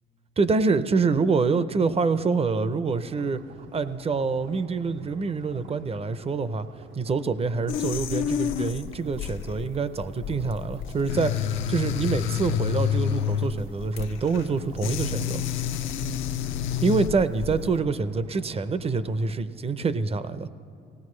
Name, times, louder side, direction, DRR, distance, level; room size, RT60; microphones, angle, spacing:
voice 1, 0.4-3.4 3.7-6.7 7.0-11.3 11.7-15.4 16.8-20.5, right 4 dB, 30° right, 13 dB, 0.6 m, -26 dB
sound 1, 2.9-19.4, right 4 dB, 75° right, 0.9 m, -50 dB
sound 2, 7.7-17.8, left 9 dB, 85° left, 0.6 m, -29 dB
18.5 x 16.5 x 3.2 m, 2.5 s
cardioid pair, 90°, 20 cm